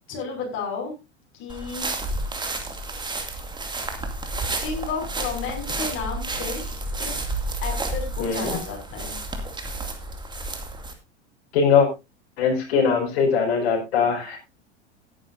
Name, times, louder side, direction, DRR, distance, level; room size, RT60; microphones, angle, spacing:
voice 1, 0.1-0.9 1.3-1.9 4.6-6.6 7.0-7.2 7.6-9.2, left 5 dB, 35° left, 0 dB, 5.8 m, -32 dB
sound 1, 1.5-10.9, right 2 dB, 15° right, 2.4 m, -31 dB
voice 2, 8.2-8.6 11.5-11.9 12.4-14.4, left 6 dB, 60° left, -2 dB, 5.1 m, -21 dB
18.5 x 10.0 x 2.6 m, 0.25 s
figure-of-eight pair, 85°, 34 cm